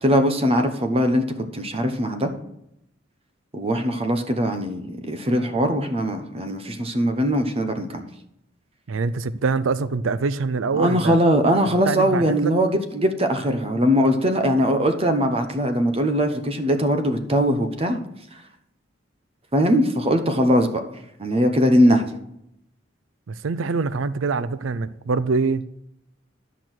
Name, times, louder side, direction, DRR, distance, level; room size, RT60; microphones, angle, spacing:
voice 1, 0.0-1.2 1.5-2.3 3.5-8.1 10.7-18.0 19.5-20.8 21.2-22.1, equal, 30° right, 0.9 m, -21 dB
voice 2, 8.9-11.2 11.8-12.5 23.3-25.6, right 4 dB, 85° right, 0.5 m, -24 dB
11.0 x 6.1 x 6.2 m
head